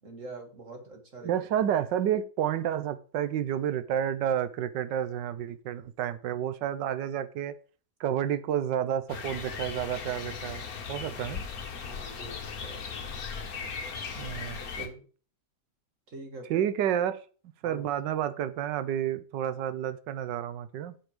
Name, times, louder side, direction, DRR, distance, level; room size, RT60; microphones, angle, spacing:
voice 1, 0.0-1.5 11.8-12.9 14.1-15.0 16.1-16.6 17.6-17.9, right 2 dB, 45° right, 3 dB, 2.2 m, -45 dB
voice 2, 1.2-7.5 8.0-10.6 10.9-11.4 14.1-14.9 16.5-17.2 17.6-21.0, right 10 dB, 85° right, 12 dB, 1.4 m, -30 dB
sound 1, 9.1-14.9, left 6 dB, 60° left, 1.6 m, -38 dB
7.6 x 7.2 x 5.0 m, 0.39 s
omnidirectional pair, 1.9 m